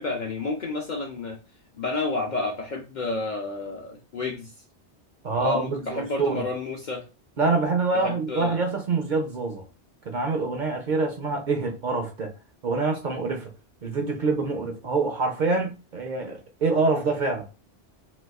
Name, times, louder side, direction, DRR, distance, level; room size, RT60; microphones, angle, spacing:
voice 1, 0.0-1.4 1.7-4.5 5.4-7.1 7.9-8.6, left 3 dB, 55° left, 0.5 m, -30 dB
voice 2, 5.2-6.4 7.4-9.6 10.1-12.3 12.6-13.5 13.8-17.5, right 3 dB, 55° right, 0.6 m, -26 dB
4.0 x 2.3 x 2.3 m
omnidirectional pair, 1.2 m